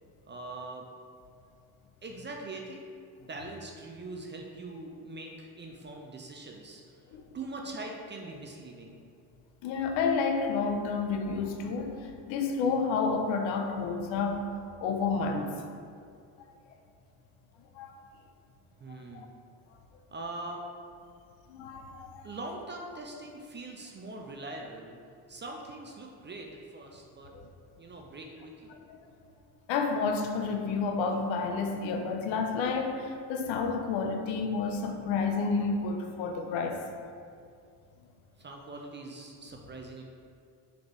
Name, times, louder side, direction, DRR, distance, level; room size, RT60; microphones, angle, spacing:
voice 1, 0.3-0.9 2.0-2.8 3.2-7.0 7.3-9.0 18.8-19.3 20.1-20.6 22.2-25.0 25.3-27.3 27.8-28.8 38.4-40.0, right 2 dB, 25° right, 0 dB, 0.4 m, -42 dB
voice 2, 9.6-14.4 14.8-15.5 17.8-18.0 19.1-19.3 21.5-22.3 27.3-27.4 28.9-29.0 29.7-36.9, left 4 dB, 65° left, 4 dB, 0.6 m, -30 dB
4.1 x 2.9 x 3.1 m, 2.3 s
hypercardioid pair, 50°, 49 cm